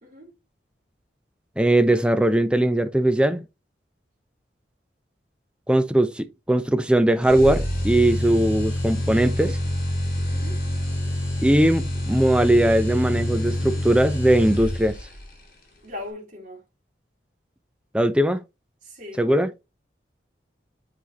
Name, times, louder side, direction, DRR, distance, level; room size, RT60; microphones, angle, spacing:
voice 1, 1.6-3.4 5.7-9.6 11.4-15.0 17.9-18.4 19.2-19.5, right 1 dB, 5° right, 0.5 m, -20 dB
sound 1, 7.2-15.2, left 1 dB, 50° left, 2.3 m, -27 dB
voice 2, 10.3-10.6 15.8-16.6 18.8-19.2, left 2 dB, 40° right, 3.0 m, -39 dB
7.9 x 5.0 x 3.0 m
head